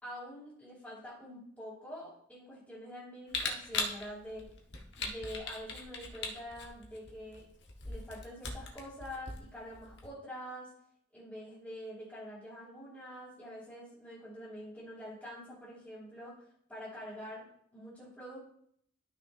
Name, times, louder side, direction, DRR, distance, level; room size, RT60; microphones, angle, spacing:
voice 1, 0.0-4.5 5.0-7.5 7.8-10.7 11.1-17.5 17.7-18.4, equal, 10° left, -10 dB, 2.9 m, -46 dB
Camera, 3.3-10.1, left 4 dB, 65° left, 1.4 m, -40 dB
12.5 x 6.1 x 2.7 m, 0.66 s
head